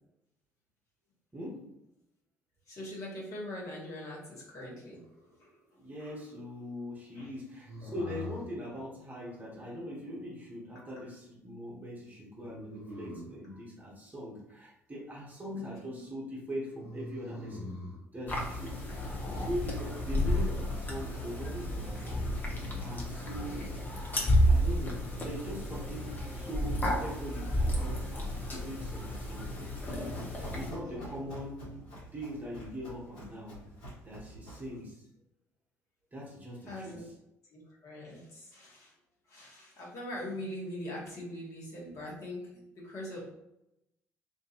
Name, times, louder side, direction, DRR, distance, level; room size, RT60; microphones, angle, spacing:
voice 1, 1.3-1.7 5.7-17.7 18.1-22.3 22.8-23.8 24.4-29.5 30.3-33.6 34.0-35.1 36.1-37.0, equal, 20° right, -4 dB, 1.0 m, -41 dB
voice 2, 2.7-5.0 5.4-5.6 6.0-6.2 7.1-7.3 7.8-8.3 10.7-10.9 13.5-13.6 15.5-15.7 15.9-16.1 18.9-19.0 30.8-31.3 36.7-37.0 37.5-38.9 39.3-43.2, left 1 dB, 45° left, -5 dB, 1.1 m, -42 dB
sound 1, 4.9-5.6 7.6-8.6 12.4-13.4 16.7-18.0, left 1 dB, 85° right, 0.7 m, -44 dB
sound 2, 18.3-30.7, equal, 25° left, 0.8 m, -31 dB
Run, 29.3-34.8, equal, 70° left, 1.2 m, -47 dB
2.6 x 2.5 x 2.4 m, 0.87 s
figure-of-eight pair, 50°, 8 cm